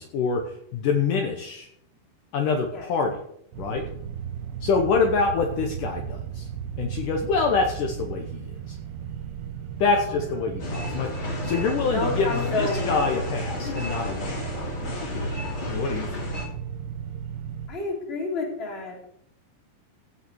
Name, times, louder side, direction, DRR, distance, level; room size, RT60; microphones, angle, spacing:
voice 1, 0.0-1.7 2.3-3.2 3.6-3.8 4.6-6.5 6.8-8.8 9.8-11.1 11.4-14.5 14.8-15.3 15.7-16.3, left 4 dB, 65° left, 3 dB, 2.4 m, -26 dB
sound 1, 3.5-17.7, right 8 dB, 85° right, 3.0 m, -36 dB
sound 2, 10.6-16.4, left 1 dB, 35° left, 3.3 m, -31 dB
voice 2, 11.9-12.9 13.6-13.7 17.7-19.1, left 2 dB, 15° left, -2 dB, 3.0 m, -30 dB
16.0 x 5.9 x 6.2 m, 0.70 s
omnidirectional pair, 4.3 m